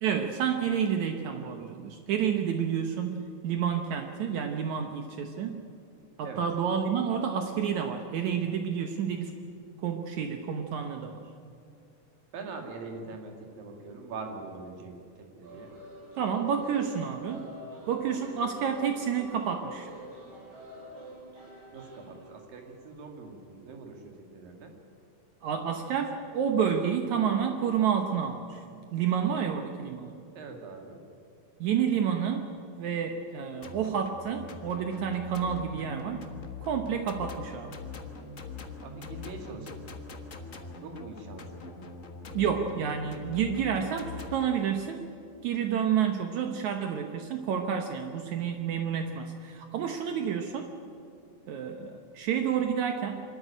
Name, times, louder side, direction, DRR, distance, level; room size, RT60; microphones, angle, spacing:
voice 1, 0.0-5.6 6.2-9.4 9.8-11.2 16.2-17.5 17.9-19.9 25.4-28.6 28.9-30.1 31.6-36.3 36.6-37.7 42.3-45.1 45.4-50.7 51.5-53.2, right 7 dB, 70° right, 5 dB, 2.1 m, -29 dB
voice 2, 12.3-15.7 21.7-24.8 30.4-31.1 38.8-39.9 40.8-41.7, right 3 dB, 90° right, 3 dB, 3.9 m, -43 dB
sound 1, 15.4-23.2, equal, 45° right, 8.8 m, -47 dB
sound 2, 33.6-44.5, left 4 dB, 80° left, 0.7 m, -43 dB
25.0 x 13.5 x 10.0 m, 2.4 s
omnidirectional pair, 3.9 m